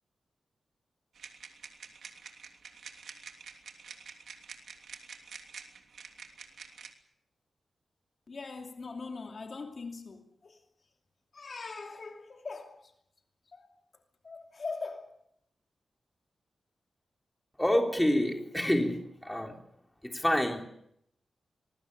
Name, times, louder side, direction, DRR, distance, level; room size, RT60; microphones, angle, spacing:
sound 1, 1.1-6.9, right 5 dB, 85° right, 3.1 m, -48 dB
voice 1, 8.3-10.6 11.3-12.9 13.5-13.7 14.2-15.2, left 4 dB, 45° left, 2.7 m, -41 dB
voice 2, 17.6-19.6 20.0-20.6, left 1 dB, 5° left, 3.6 m, -27 dB
25.5 x 21.0 x 6.9 m
wide cardioid pair, 130°, 0 cm